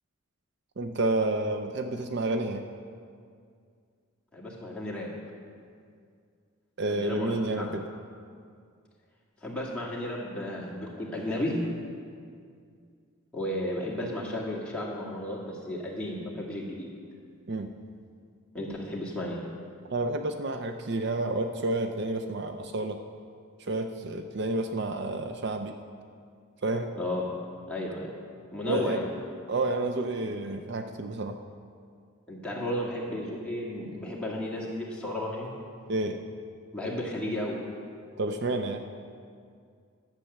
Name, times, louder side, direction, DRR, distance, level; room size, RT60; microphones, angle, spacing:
voice 1, 0.8-2.7 6.8-7.8 17.5-17.7 19.9-23.0 23.6-25.8 26.6-26.9 28.7-29.0 29.5-31.4 35.9-36.3 38.2-38.8, right 2 dB, 55° right, 6 dB, 0.5 m, -30 dB
voice 2, 4.3-5.1 6.9-7.7 9.4-11.6 13.3-16.9 18.5-19.4 27.0-27.2 27.7-28.1 28.5-29.1 32.3-35.5 36.7-37.6, left 1 dB, 5° left, -5 dB, 1.9 m, -33 dB
11.5 x 7.5 x 6.7 m, 2.2 s
head